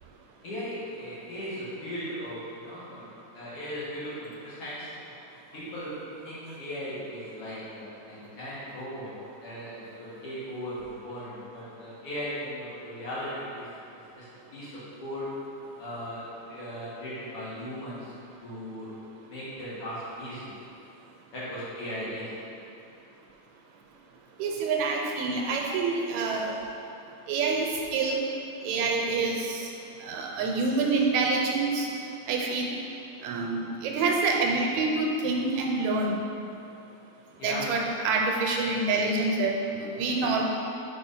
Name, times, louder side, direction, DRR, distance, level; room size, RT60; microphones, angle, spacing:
voice 1, 0.4-5.0 5.5-13.7 13.9-15.4 15.8-18.1 18.4-18.9 19.3-20.5 21.3-22.4 31.0-31.1 37.4-37.8, equal, 55° left, -9 dB, 2.2 m, -38 dB
voice 2, 24.4-26.6 27.3-28.2 28.6-29.7 30.0-31.9 32.3-32.8 33.2-36.2 37.4-40.5, right 3 dB, 85° right, 0 dB, 2.0 m, -27 dB
4.9 x 4.9 x 5.3 m, 2.8 s
omnidirectional pair, 3.3 m